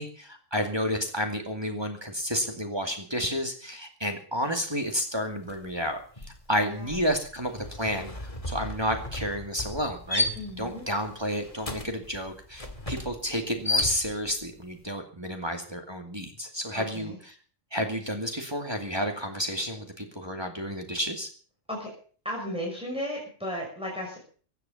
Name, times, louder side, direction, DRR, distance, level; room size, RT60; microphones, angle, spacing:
voice 1, 0.0-8.1 8.5-10.3 10.6-17.4 17.7-21.3, equal, 20° right, 3 dB, 2.3 m, -31 dB
sound 1, 5.4-5.7 6.0-14.5, left 2 dB, 25° left, 2.1 m, -34 dB
voice 2, 6.6-7.0 10.4-10.8 16.7-17.2 21.7-21.9 22.2-24.2, equal, 5° right, -2 dB, 6.1 m, -35 dB
16.5 x 11.0 x 7.0 m, 0.43 s
omnidirectional pair, 1.3 m